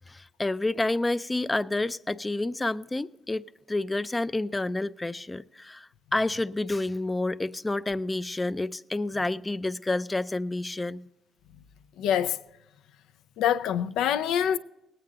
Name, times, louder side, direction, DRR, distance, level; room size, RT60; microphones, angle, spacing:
voice 1, 0.1-11.0, left 2 dB, 15° left, 0.4 m, -29 dB
voice 2, 12.0-12.4 13.4-14.6, left 9 dB, 90° left, 0.5 m, -25 dB
19.0 x 8.8 x 3.8 m
cardioid pair, 90°, 0 cm